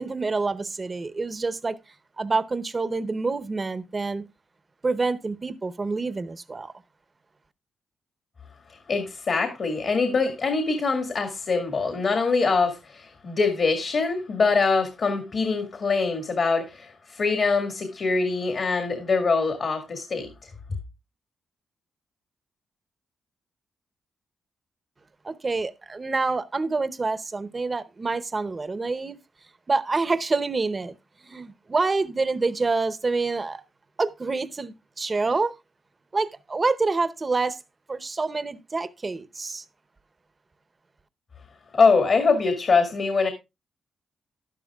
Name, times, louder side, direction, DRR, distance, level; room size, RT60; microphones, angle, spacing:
voice 1, 0.0-1.8 2.2-4.2 4.8-6.7 25.2-29.2 29.7-30.9 31.2-33.6 34.0-35.5 36.1-37.6 37.9-39.6, right 3 dB, 30° right, 0.8 m, -27 dB
voice 2, 8.9-20.5 41.7-43.3, left 4 dB, 55° left, 2.0 m, -23 dB
11.5 x 11.0 x 2.3 m
cardioid pair, 85°, 0 cm